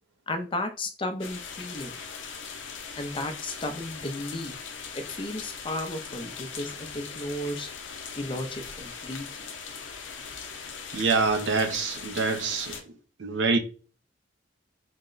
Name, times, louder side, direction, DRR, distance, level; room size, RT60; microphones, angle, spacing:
voice 1, 0.3-1.9 3.0-4.5 4.9-7.7 8.2-9.2, left 1 dB, 25° left, 0.5 m, -34 dB
sound 1, 1.2-12.8, left 6 dB, 85° left, 0.6 m, -40 dB
voice 2, 10.9-12.8 13.2-13.6, right 4 dB, 70° right, 0.6 m, -25 dB
4.0 x 2.1 x 3.8 m
head